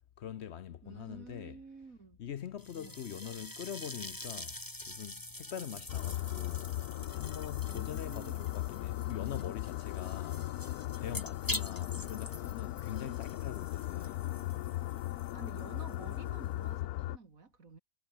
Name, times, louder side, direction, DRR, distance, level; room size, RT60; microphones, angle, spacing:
voice 1, 0.2-1.6 2.2-6.7 7.1-10.4 11.0-14.3, left 9 dB, 55° left, 0.8 m, -43 dB
voice 2, 0.8-2.2 2.7-3.5 5.5-5.8 7.7-8.6 15.3-17.8, right 4 dB, 65° right, 2.9 m, -51 dB
bubbles mono, 2.6-16.8, left 1 dB, 15° left, 2.2 m, -46 dB
sound 1, 5.9-17.2, left 15 dB, 85° left, 1.1 m, -38 dB
omnidirectional pair, 1.6 m